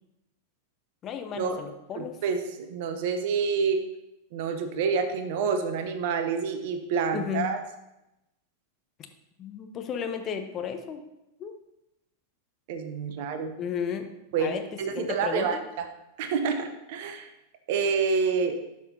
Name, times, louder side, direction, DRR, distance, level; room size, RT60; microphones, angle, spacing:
voice 1, 1.0-2.2 7.1-7.5 9.4-11.0 11.4-11.6 13.2-13.3 13.6-14.1 14.4-14.6 14.9-15.6, left 7 dB, 30° left, 6 dB, 0.8 m, -33 dB
voice 2, 1.9-3.8 4.3-7.6 12.7-13.5 14.3-15.9 16.2-17.3 17.7-18.6, right 5 dB, 50° right, 8 dB, 0.8 m, -28 dB
11.5 x 5.9 x 2.8 m, 0.90 s
figure-of-eight pair, 90°, 0 cm